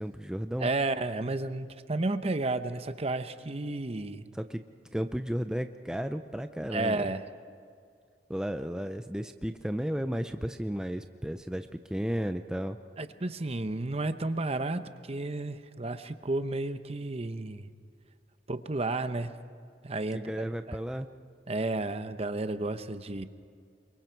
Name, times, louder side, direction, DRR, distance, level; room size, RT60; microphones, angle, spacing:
voice 1, 0.0-0.7 4.3-4.6 4.9-7.1 8.3-12.8 20.1-21.1, equal, 5° right, 7 dB, 0.5 m, -33 dB
voice 2, 0.6-4.2 6.7-7.3 13.0-17.7 18.5-19.3 19.8-20.8 21.5-23.3, right 2 dB, 35° right, 10 dB, 0.9 m, -32 dB
28.0 x 23.5 x 4.6 m, 2.3 s
head